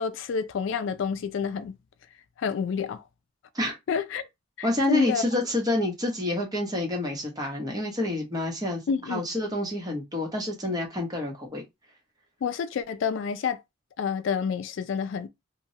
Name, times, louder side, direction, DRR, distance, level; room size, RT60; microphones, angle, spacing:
voice 1, 0.0-1.7 2.4-3.0 3.9-4.2 4.6-5.2 8.9-9.2 12.4-13.6 14.0-15.3, left 6 dB, 60° left, 0.3 m, -28 dB
voice 2, 4.6-8.8 9.1-11.6, left 1 dB, 20° right, 0.8 m, -28 dB
3.0 x 2.2 x 2.7 m
head